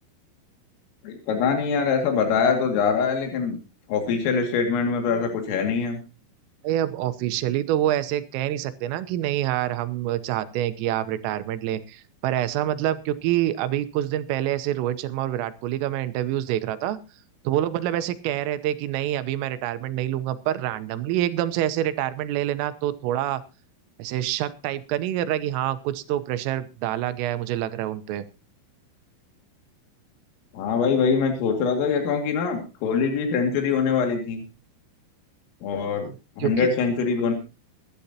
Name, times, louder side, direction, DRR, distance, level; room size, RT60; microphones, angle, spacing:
voice 1, 1.0-3.6 3.9-6.0 30.5-34.4 35.6-36.1 36.4-37.3, left 5 dB, 85° left, 3 dB, 4.9 m, -23 dB
voice 2, 6.6-17.0 17.5-23.4 24.0-28.3 36.0-36.8, right 12 dB, 90° right, 12 dB, 3.6 m, -26 dB
22.5 x 12.0 x 2.9 m, 0.31 s
omnidirectional pair, 5.7 m